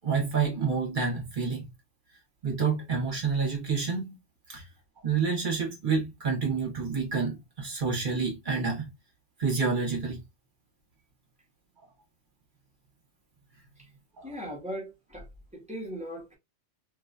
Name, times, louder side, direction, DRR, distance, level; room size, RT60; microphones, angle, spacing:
voice 1, 0.0-1.7 2.4-4.2 4.5-4.6 5.0-8.9 9.4-10.2 14.2-14.3, right 5 dB, 45° right, 1.3 m, -28 dB
voice 2, 14.2-15.3 15.5-16.4, equal, 5° right, 1.4 m, -38 dB
3.2 x 3.0 x 2.5 m
omnidirectional pair, 1.2 m